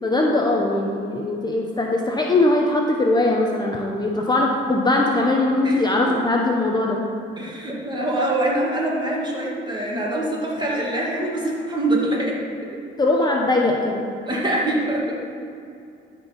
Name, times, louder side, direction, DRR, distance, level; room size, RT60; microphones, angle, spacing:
voice 1, 0.0-7.0 13.0-14.1, left 2 dB, 20° left, -1 dB, 1.0 m, -20 dB
voice 2, 7.4-12.8 14.3-15.2, right 1 dB, 20° right, -3 dB, 2.3 m, -24 dB
13.0 x 4.6 x 5.3 m, 2.5 s
cardioid pair, 90°, 20 cm